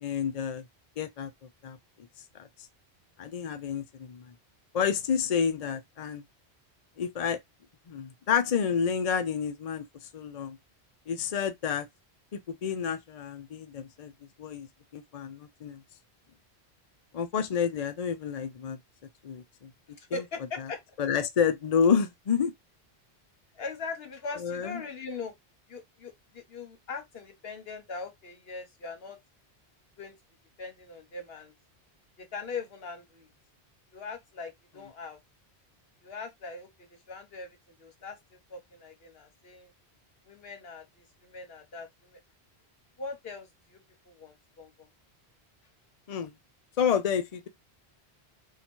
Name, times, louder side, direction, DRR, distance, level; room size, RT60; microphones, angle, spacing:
voice 1, 0.0-0.6 1.0-1.3 1.6-1.8 2.4-2.5 3.2-4.2 4.7-6.2 7.0-7.4 7.9-10.6 11.1-11.9 12.3-14.1 14.4-14.7 14.9-15.8 17.1-18.8 19.2-19.7 20.1-20.2 21.0-22.5 24.4-24.8 46.1-46.3 46.8-47.5, left 7 dB, 50° left, 0.5 m, -29 dB
voice 2, 19.9-21.0 23.5-25.3 25.7-29.2 30.0-30.2 30.6-31.5 32.2-33.3 33.9-35.2 36.0-39.7 40.2-42.2 43.0-44.9, left 4 dB, 65° left, 1.2 m, -41 dB
2.9 x 2.4 x 4.2 m
omnidirectional pair, 1.1 m